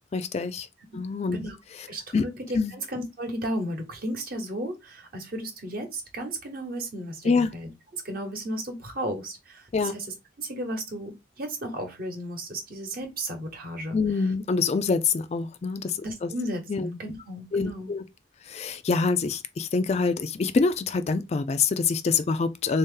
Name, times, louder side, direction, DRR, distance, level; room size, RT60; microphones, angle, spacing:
voice 1, 0.1-0.7 0.9-1.4 2.1-2.2 2.5-2.7 7.2-7.5 9.7-9.9 13.9-16.3 16.7-16.9 17.5-18.0 18.4-22.8, left 4 dB, 35° left, 0.3 m, -25 dB
voice 2, 1.9-10.1 10.4-14.0 16.0-17.9, right 1 dB, 50° right, 1.0 m, -34 dB
3.6 x 2.8 x 3.7 m
head